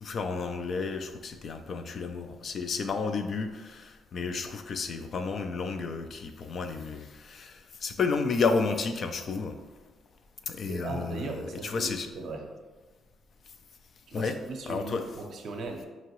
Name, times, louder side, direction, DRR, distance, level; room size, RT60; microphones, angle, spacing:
voice 1, 0.0-9.6 10.5-11.4 11.6-12.1 14.1-14.4 14.7-15.0, left 4 dB, 55° left, 7 dB, 0.4 m, -31 dB
voice 2, 10.7-12.5 14.1-15.8, right 3 dB, 65° right, 3 dB, 0.6 m, -38 dB
4.5 x 2.9 x 2.9 m, 1.3 s
cardioid pair, 90°, 0 cm